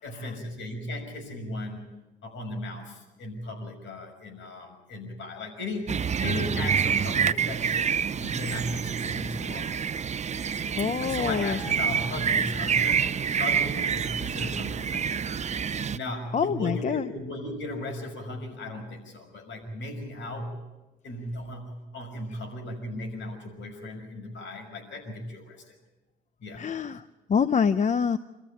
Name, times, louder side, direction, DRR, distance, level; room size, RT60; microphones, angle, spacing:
voice 1, 0.0-1.8 2.2-9.8 11.0-15.4 15.8-20.6 21.0-25.7 26.4-26.7, left 1 dB, 70° left, 4 dB, 6.0 m, -36 dB
sound 1, 5.9-16.0, right 7 dB, 35° right, 0.6 m, -27 dB
voice 2, 10.8-11.6 16.3-17.0 26.6-27.0 27.3-28.2, left 6 dB, 35° left, 13 dB, 0.6 m, -25 dB
26.5 x 14.0 x 9.3 m, 1.1 s
cardioid pair, 90°, 20 cm